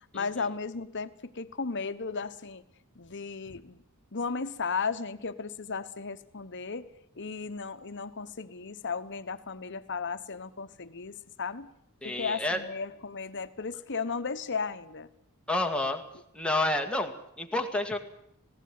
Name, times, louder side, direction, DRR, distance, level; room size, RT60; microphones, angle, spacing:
voice 1, 0.1-2.6 3.0-3.8 4.1-6.9 7.2-11.7 12.0-15.1, left 5 dB, 55° left, 11 dB, 1.1 m, -35 dB
voice 2, 12.0-12.6 15.5-16.0 16.3-18.0, left 2 dB, 5° left, 4 dB, 1.9 m, -29 dB
19.0 x 16.5 x 9.5 m, 0.76 s
head